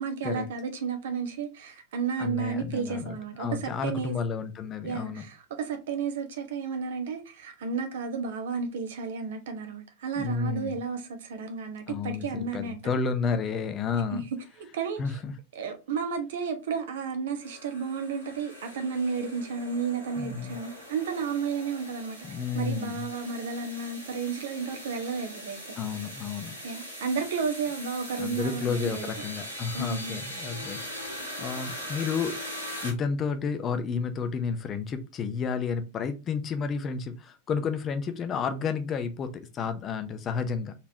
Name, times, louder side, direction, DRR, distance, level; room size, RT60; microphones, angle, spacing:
voice 1, 0.0-4.2 4.8-12.8 14.1-14.2 14.6-15.0 15.5-25.7 26.6-29.1 29.7-30.1, right 5 dB, 60° right, 1.0 m, -32 dB
voice 2, 2.2-5.2 10.2-10.8 11.9-14.3 15.0-15.3 20.2-20.6 22.2-23.1 25.8-26.5 28.2-32.5 32.8-40.7, left 5 dB, 25° left, 0.7 m, -31 dB
sound 1, 17.4-32.9, equal, 85° right, 1.7 m, -41 dB
4.2 x 3.4 x 2.8 m
figure-of-eight pair, 90°, 0 cm